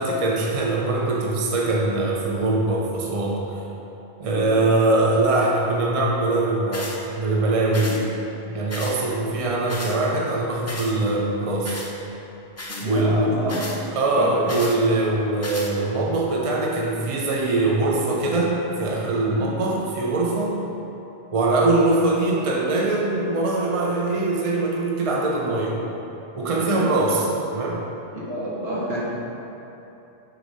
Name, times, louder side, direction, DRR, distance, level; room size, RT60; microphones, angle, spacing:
voice 1, 0.0-3.4 4.2-8.0 8.5-11.8 12.8-13.3 13.9-20.6 21.3-25.8 26.3-27.2 27.5-27.8, right 2 dB, 40° right, -2 dB, 0.6 m, -22 dB
sound 1, 6.7-7.0 7.7-8.0 8.7-9.0 9.7-10.0 10.7-10.9 11.6-11.9 12.6-12.9 13.5-13.8 14.5-14.8 15.4-15.7, left 2 dB, 25° left, 0.3 m, -34 dB
voice 2, 12.7-13.6 14.1-14.4 19.3-19.5 26.6-26.9 28.1-29.1, right 1 dB, 65° right, -7 dB, 1.5 m, -29 dB
4.8 x 4.0 x 5.5 m, 2.9 s
omnidirectional pair, 1.1 m